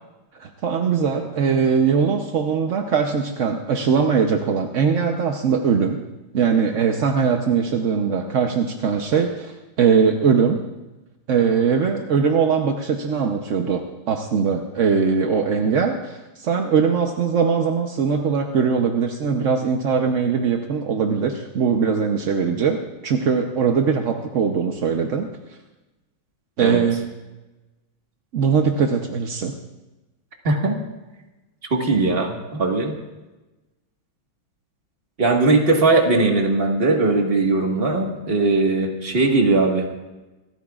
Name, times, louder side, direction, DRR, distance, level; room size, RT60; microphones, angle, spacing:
voice 1, 0.4-6.0 6.3-10.6 11.3-13.8 14.1-22.8 23.0-25.3 26.6-27.1 28.3-29.5, right 6 dB, 55° right, 3 dB, 0.9 m, -21 dB
voice 2, 30.4-30.8 31.7-32.9 35.2-40.0, right 3 dB, 30° right, 2 dB, 1.7 m, -19 dB
27.5 x 14.0 x 2.4 m, 1.1 s
omnidirectional pair, 2.2 m